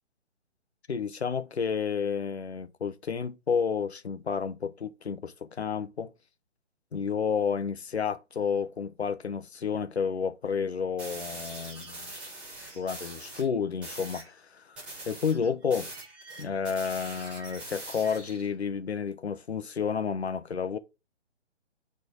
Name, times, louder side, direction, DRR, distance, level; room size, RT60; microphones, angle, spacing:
voice 1, 0.9-6.1 6.9-12.1 12.7-15.9 16.4-20.8, left 6 dB, 65° left, 0.8 m, -31 dB
sound 1, 11.0-13.5 13.8-14.3 14.8-18.5, right 2 dB, 5° right, 0.6 m, -43 dB
4.7 x 4.5 x 4.9 m
figure-of-eight pair, 135°, 35 cm